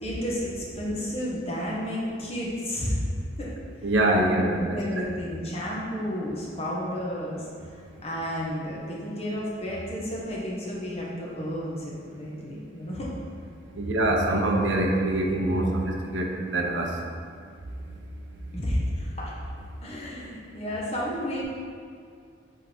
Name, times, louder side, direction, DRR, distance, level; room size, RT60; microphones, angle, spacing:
voice 1, 0.0-3.0 3.4-3.5 4.1-7.5 8.0-13.1 15.6-15.7 18.5-19.4 19.8-21.4, equal, 35° left, -5 dB, 1.4 m, -32 dB
voice 2, 3.8-5.2 13.8-16.9, right 1 dB, 90° right, 0 dB, 0.9 m, -24 dB
7.9 x 3.6 x 4.5 m, 2.2 s
head